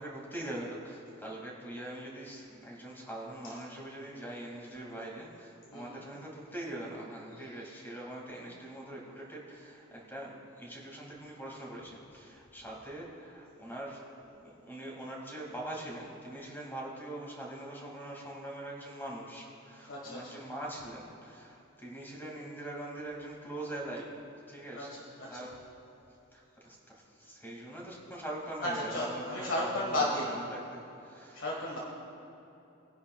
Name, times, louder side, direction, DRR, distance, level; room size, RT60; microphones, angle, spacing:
voice 1, 0.0-24.1 24.5-25.0 25.3-25.5 26.3-31.4, right 1 dB, 10° left, -3 dB, 2.3 m, -43 dB
voice 2, 5.7-6.1 7.3-7.4 19.9-20.4 24.7-25.5 28.6-30.4 31.3-31.8, left 1 dB, 60° left, -3 dB, 1.7 m, -34 dB
20.5 x 10.5 x 2.4 m, 2.9 s
head